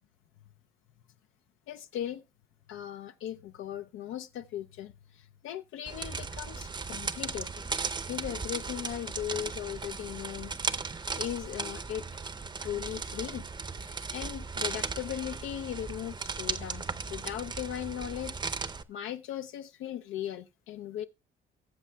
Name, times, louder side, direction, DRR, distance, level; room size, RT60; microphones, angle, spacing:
voice 1, 1.7-2.2 2.7-7.6 8.1-12.2 12.6-13.5 13.8-21.1, left 11 dB, 85° left, 0.5 m, -38 dB
sound 1, 5.9-18.8, right 4 dB, 25° right, 0.6 m, -36 dB
18.5 x 7.3 x 2.2 m
cardioid pair, 90°, 20 cm